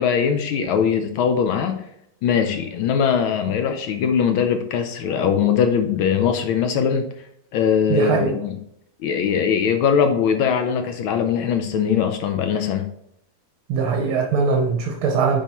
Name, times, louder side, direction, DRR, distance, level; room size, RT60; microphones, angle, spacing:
voice 1, 0.0-1.8 2.2-7.1 7.5-8.6 9.0-12.9, left 7 dB, 75° left, 1.4 m, -21 dB
voice 2, 7.9-8.3 13.7-15.4, right 5 dB, 75° right, 1.8 m, -21 dB
10.0 x 4.7 x 3.0 m
omnidirectional pair, 2.4 m